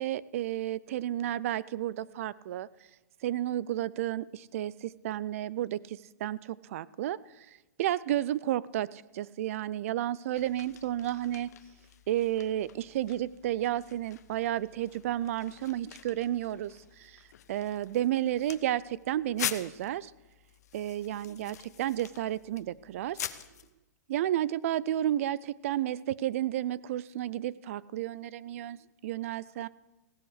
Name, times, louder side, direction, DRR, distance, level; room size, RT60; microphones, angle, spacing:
voice 1, 0.0-2.7 3.2-7.5 7.8-11.5 12.1-17.2 17.5-20.1 20.7-23.2 24.1-29.7, right 12 dB, 50° right, 21 dB, 0.4 m, -32 dB
sound 1, 10.3-23.7, left 10 dB, 65° left, 0.8 m, -44 dB
16.0 x 7.9 x 6.4 m, 1.1 s
hypercardioid pair, 145°, 9 cm